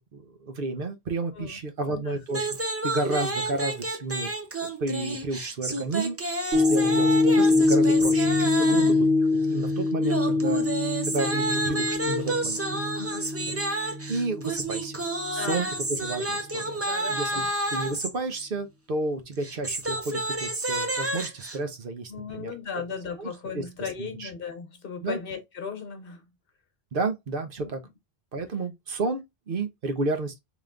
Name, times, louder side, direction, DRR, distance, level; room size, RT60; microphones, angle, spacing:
voice 1, 0.1-4.3 4.6-10.6 11.0-12.8 13.2-13.3 13.7-15.0 15.3-16.8 17.1-22.5 23.2-24.3 25.0-25.2 26.9-27.8 28.3-30.4, right 3 dB, 60° right, 0.9 m, -32 dB
voice 2, 1.4-2.2 8.6-9.0 12.9-13.6 15.3-15.6 16.9-17.5 22.1-26.2 27.6-27.7, left 6 dB, 60° left, 1.2 m, -37 dB
sound 1, 2.3-9.1 10.0-18.1 19.3-21.6, right 2 dB, 20° right, 0.5 m, -30 dB
sound 2, 6.5-14.9 15.4-15.5, left 3 dB, 90° right, 1.5 m, -24 dB
3.4 x 3.0 x 3.6 m
omnidirectional pair, 1.0 m